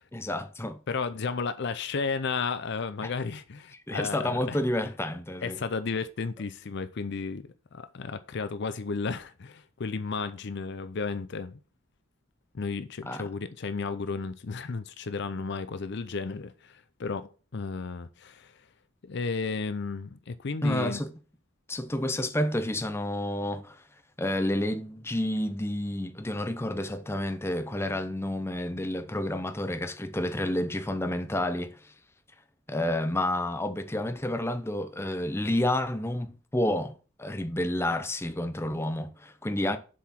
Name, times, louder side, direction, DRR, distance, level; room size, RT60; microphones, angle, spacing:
voice 1, 0.1-0.8 3.0-3.1 3.9-5.6 13.1-13.3 20.6-21.1 21.7-23.8 24.2-31.9 32.7-39.8, left 1 dB, 10° left, 0.6 m, -30 dB
voice 2, 0.9-4.6 5.4-11.6 12.5-18.5 19.0-21.0, left 4 dB, 55° left, 0.5 m, -33 dB
7.0 x 4.8 x 5.8 m
head